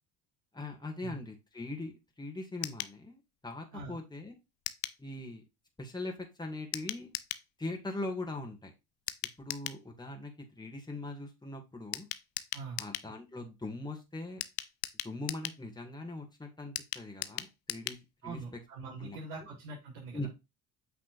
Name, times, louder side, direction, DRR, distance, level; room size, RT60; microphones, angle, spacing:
voice 1, 0.5-4.3 5.0-5.4 5.8-7.1 7.6-8.7 9.4-12.1 12.8-14.4 15.0-18.4 19.0-19.2 20.1-20.3, left 2 dB, 10° left, 2 dB, 2.5 m, -41 dB
sound 1, 2.6-3.0 4.7-5.0 6.7-7.5 9.1-9.8 11.9-13.1 14.4-15.6 16.8-18.0 18.3-18.4 18.7-18.8, left 16 dB, 65° left, 0.8 m, -38 dB
voice 2, 18.2-20.3, right 3 dB, 65° right, -6 dB, 4.2 m, -43 dB
8.2 x 6.0 x 2.7 m, 0.24 s
hypercardioid pair, 55°, 43 cm